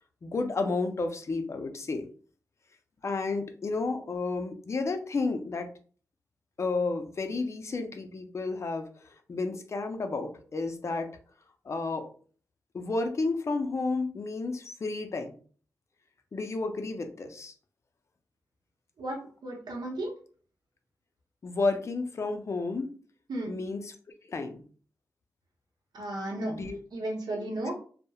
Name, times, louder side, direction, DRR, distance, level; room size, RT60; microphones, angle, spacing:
voice 1, 0.2-2.1 3.0-5.7 6.6-11.1 11.6-12.1 12.7-15.4 16.3-17.5 21.4-22.9 23.5-23.9 24.2-24.6 26.5-26.8, left 3 dB, 45° left, 6 dB, 0.4 m, -31 dB
voice 2, 19.0-20.2 23.3-23.5 25.9-26.6 26.9-27.7, right 1 dB, 80° right, 0 dB, 0.7 m, -34 dB
2.7 x 2.0 x 2.3 m, 0.42 s
wide cardioid pair, 105°, 7 cm